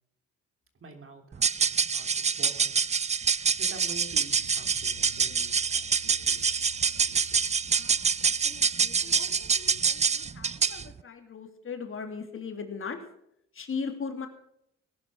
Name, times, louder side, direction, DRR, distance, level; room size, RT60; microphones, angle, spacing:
voice 1, 0.7-2.8 3.6-6.6 6.8-7.4, right 2 dB, 45° right, 6 dB, 3.1 m, -48 dB
sound 1, 1.3-10.9, right 5 dB, 25° right, 0.5 m, -26 dB
sound 2, 4.3-9.9, left 9 dB, 85° left, 2.9 m, -53 dB
voice 2, 7.7-13.0 13.5-14.3, left 5 dB, 45° left, 5 dB, 2.9 m, -39 dB
18.0 x 10.5 x 6.2 m, 0.76 s
cardioid pair, 90°, 30 cm